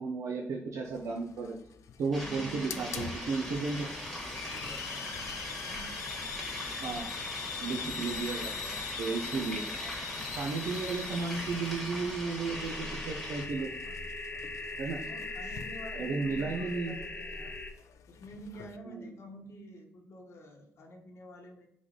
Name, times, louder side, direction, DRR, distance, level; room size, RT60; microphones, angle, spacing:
voice 1, 0.0-1.6 2.0-3.9 6.8-7.1 7.6-9.6 10.3-13.7 14.8-15.0 15.9-16.9 18.9-19.1, right 4 dB, 90° right, 1 dB, 0.6 m, -34 dB
Hiss, 0.9-18.8, left 8 dB, 85° left, 0.3 m, -44 dB
voice 2, 2.1-3.9 4.3-5.2 5.6-6.1 15.1-17.5 18.1-21.7, equal, 60° left, 2 dB, 1.0 m, -49 dB
sound 1, 2.1-13.5, equal, 5° left, 1.4 m, -40 dB
sound 2, 12.5-17.7, left 2 dB, 30° left, 0.6 m, -40 dB
4.0 x 3.1 x 3.7 m, 0.71 s
cardioid pair, 120°, 5 cm